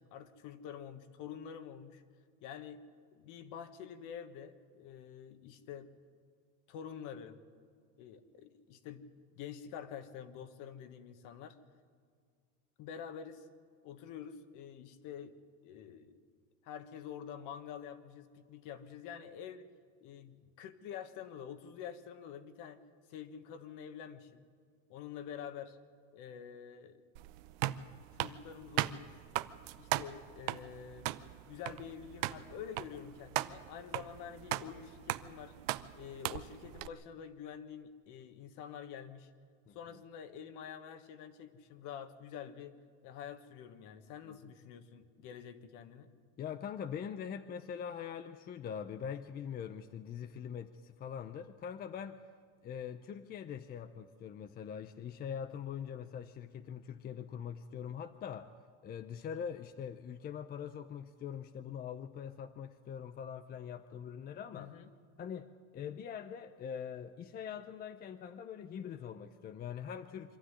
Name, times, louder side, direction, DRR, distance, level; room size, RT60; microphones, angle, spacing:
voice 1, 0.0-2.0 2.4-2.8 3.1-5.9 6.7-7.4 8.0-9.0 9.3-11.6 12.8-13.5 13.8-15.4 15.6-16.2 16.6-19.7 20.0-22.8 23.1-24.4 24.9-25.8 26.1-27.0 28.1-29.2 29.7-31.1 31.5-35.5 35.9-39.3 39.7-42.8 43.0-46.1 64.5-64.9, left 8 dB, 50° left, 9 dB, 1.6 m, -47 dB
sound 1, 27.1-36.9, right 16 dB, 75° right, 0.8 m, -38 dB
voice 2, 46.4-52.2 52.6-58.5 58.8-64.7 65.2-70.4, left 8 dB, 25° left, 10 dB, 0.6 m, -43 dB
24.5 x 13.0 x 9.8 m, 2.1 s
supercardioid pair, 140°, 38 cm